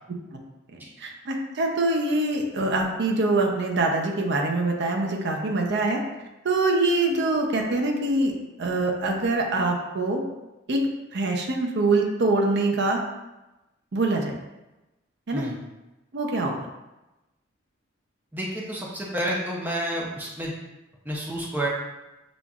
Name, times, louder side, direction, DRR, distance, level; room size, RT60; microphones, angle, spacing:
voice 1, 0.7-6.0 6.4-8.3 8.6-10.2 10.7-10.8 11.1-13.0 13.9-14.3 15.3-15.4 16.1-16.5, right 2 dB, 60° right, 1 dB, 0.6 m, -24 dB
voice 2, 18.3-20.6 21.1-21.7, right 1 dB, 10° right, -4 dB, 0.6 m, -29 dB
6.8 x 2.5 x 2.3 m, 1.0 s
head